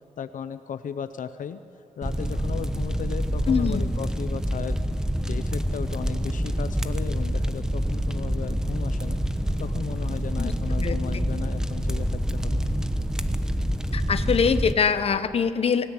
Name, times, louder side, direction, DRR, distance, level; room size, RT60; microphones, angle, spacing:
voice 1, 0.2-4.8 5.2-9.2 9.6-12.6, left 7 dB, 70° left, 11 dB, 0.8 m, -36 dB
sound 1, 2.0-14.7, equal, 5° right, 0.9 m, -27 dB
voice 2, 3.5-3.8 10.4-10.5 10.8-11.0 13.9-15.9, left 6 dB, 45° left, 11 dB, 1.0 m, -23 dB
23.5 x 18.0 x 9.8 m, 2.6 s
wide cardioid pair, 165°, 14 cm